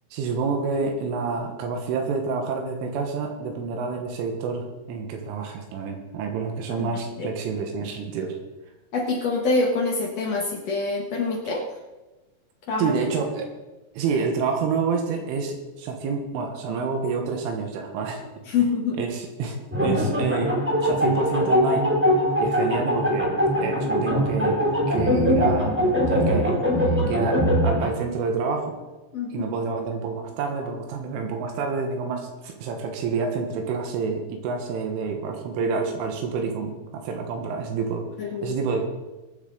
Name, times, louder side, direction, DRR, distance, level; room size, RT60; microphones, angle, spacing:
voice 1, 0.1-8.4 12.8-13.5 14.0-18.2 19.0-20.6 20.8-22.0 22.4-25.8 26.1-26.6 26.9-28.8 29.3-38.8, right 5 dB, 85° right, 3 dB, 4.0 m, -28 dB
voice 2, 6.7-7.3 8.9-11.7 12.7-12.9 18.5-19.0 29.1-29.5 38.2-38.6, left 3 dB, 90° left, -2 dB, 1.4 m, -26 dB
sound 1, 19.7-27.9, equal, 5° right, 1.5 m, -22 dB
24.0 x 8.3 x 3.9 m, 1.1 s
omnidirectional pair, 5.6 m